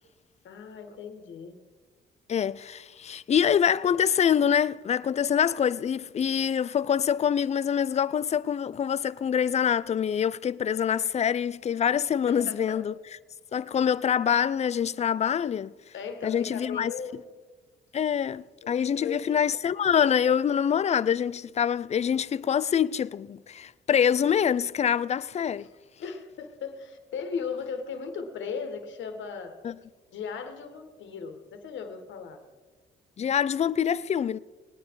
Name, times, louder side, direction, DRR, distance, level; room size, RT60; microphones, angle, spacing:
voice 1, 0.4-1.6 12.3-12.8 15.9-17.2 18.6-19.4 25.6-25.7 26.0-29.6 30.1-32.4, left 6 dB, 70° left, 1.7 m, -37 dB
voice 2, 2.3-12.9 13.5-15.7 16.2-16.9 17.9-25.7 29.6-29.7 33.2-34.4, left 8 dB, 35° left, 0.4 m, -25 dB
19.5 x 9.4 x 4.7 m
cardioid pair, 90°, 20 cm